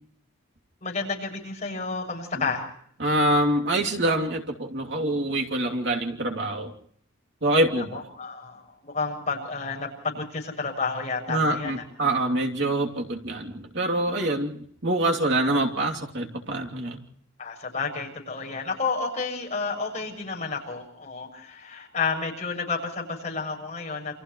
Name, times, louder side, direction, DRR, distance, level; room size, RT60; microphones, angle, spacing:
voice 1, 0.8-2.7 7.8-11.8 17.4-24.2, left 4 dB, 35° left, 1 dB, 6.9 m, -31 dB
voice 2, 3.0-6.7 7.4-8.0 11.3-17.0, right 1 dB, 60° right, 1 dB, 3.0 m, -25 dB
28.5 x 28.5 x 3.2 m, 0.64 s
head